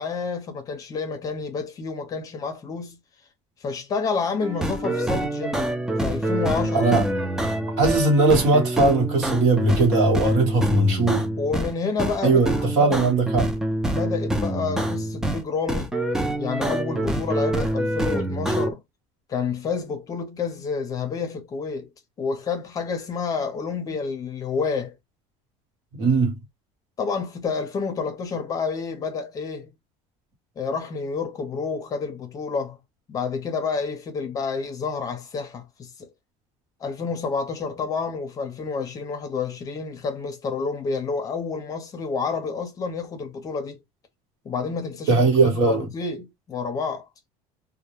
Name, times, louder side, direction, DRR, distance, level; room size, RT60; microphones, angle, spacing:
voice 1, 0.0-3.0 3.6-5.6 6.0-6.9 11.4-13.0 13.9-16.0 16.4-18.8 19.3-21.9 22.2-24.9 27.0-29.7 30.6-32.8 33.1-36.1 36.8-43.8 44.4-45.3 45.6-47.1, left 5 dB, 25° left, 0.6 m, -29 dB
sound 1, 4.4-11.7 12.0-15.4 15.7-18.7, right 1 dB, 5° right, 0.3 m, -26 dB
voice 2, 7.8-11.2 12.2-13.5 26.0-26.3 45.1-45.9, right 3 dB, 60° right, 1.1 m, -19 dB
2.2 x 2.1 x 2.9 m
cardioid pair, 160°, 13 cm